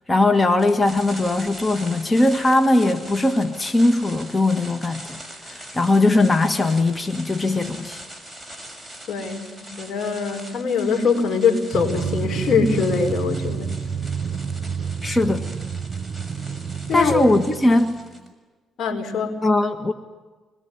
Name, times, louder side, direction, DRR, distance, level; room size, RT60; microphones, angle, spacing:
voice 1, 0.1-5.2 5.4-8.0 15.0-15.5 16.9-18.0 19.4-19.9, left 2 dB, 20° left, 7 dB, 1.6 m, -20 dB
sound 1, 0.6-18.3, right 1 dB, 5° left, 6.3 m, -41 dB
voice 2, 9.1-13.8 16.9-17.3 18.8-19.4, left 5 dB, 70° left, 5 dB, 5.1 m, -23 dB
Drum, 11.7-18.2, right 6 dB, 45° right, 1.1 m, -29 dB
26.0 x 21.5 x 9.7 m, 1.3 s
cardioid pair, 90°, 0 cm